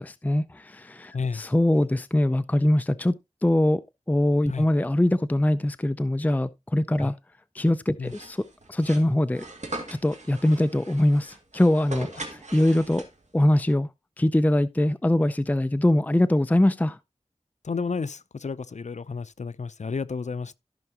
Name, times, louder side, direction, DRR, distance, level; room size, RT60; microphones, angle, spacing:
voice 1, 0.0-3.1 3.4-7.1 7.5-8.4 8.7-9.4 9.9-13.0 13.3-13.9 14.2-17.0, left 1 dB, 15° left, 0.5 m, -23 dB
sound 1, 8.0-13.4, right 2 dB, 75° right, 2.3 m, -40 dB
voice 2, 17.6-20.6, left 5 dB, 75° left, 0.6 m, -32 dB
14.5 x 5.8 x 2.9 m
wide cardioid pair, 45°, 12 cm